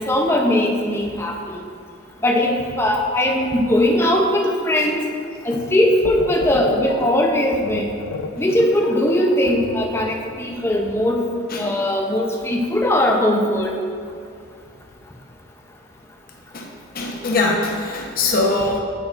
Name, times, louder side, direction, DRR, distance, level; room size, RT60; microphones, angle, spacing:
voice 1, 0.0-1.6 2.2-5.0 5.4-8.0 8.4-11.2 11.6-13.7, left 1 dB, 10° left, 1 dB, 0.5 m, -19 dB
sound 1, 6.0-10.5, left 4 dB, 90° left, 0.4 m, -30 dB
voice 2, 16.9-18.8, left 2 dB, 45° left, 0 dB, 0.8 m, -22 dB
8.8 x 5.9 x 2.4 m, 2.4 s
head